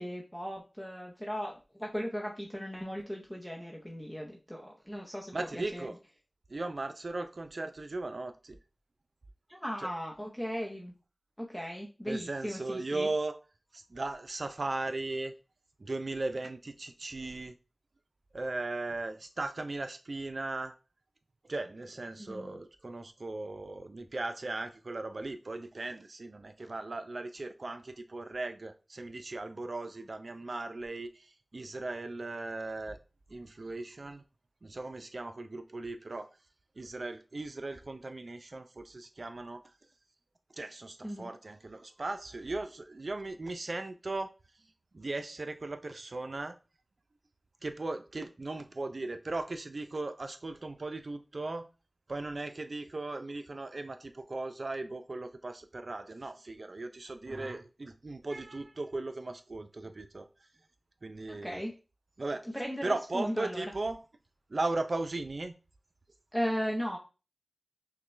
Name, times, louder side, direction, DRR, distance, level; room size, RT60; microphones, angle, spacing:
voice 1, 0.0-5.9 9.5-10.9 11.4-13.1 22.2-22.6 41.0-41.3 61.3-61.8 62.5-63.6 66.3-67.0, equal, 5° left, 0.7 m, -37 dB
voice 2, 5.3-6.0 6.5-8.6 12.1-13.4 13.7-15.3 15.8-17.6 18.3-20.7 21.5-33.0 33.3-34.2 34.6-36.3 36.8-39.6 40.5-44.3 44.9-46.6 47.6-51.7 52.1-60.3 61.0-61.6 62.2-62.5 62.8-64.0 64.5-65.6, right 2 dB, 65° right, 0.5 m, -37 dB
5.7 x 2.2 x 3.1 m
wide cardioid pair, 50°, 0 cm